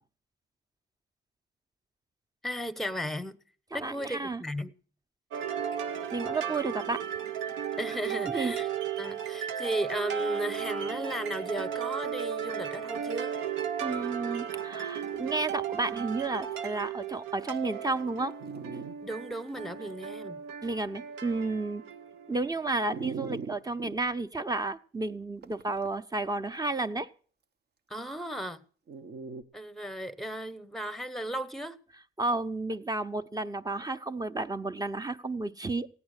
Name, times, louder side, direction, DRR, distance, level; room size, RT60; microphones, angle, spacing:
voice 1, 2.4-3.4 3.7-4.7 7.8-8.7 9.0-13.3 19.0-20.4 27.9-28.7 29.5-31.8, right 1 dB, ahead, 1.0 m, -35 dB
voice 2, 3.7-4.4 6.1-7.0 8.3-8.5 13.8-18.3 20.6-21.8 22.3-27.1 32.2-35.9, right 3 dB, 20° right, 0.8 m, -32 dB
sound 1, 5.3-23.2, right 8 dB, 90° right, 1.0 m, -35 dB
Dog, 15.8-16.1 16.8-16.9 17.5-17.6 18.4-18.9 19.5-19.6 22.9-24.0 25.4-26.0 28.9-29.4, right 5 dB, 55° right, 1.0 m, -40 dB
15.5 x 9.8 x 6.6 m
cardioid pair, 90°, 20 cm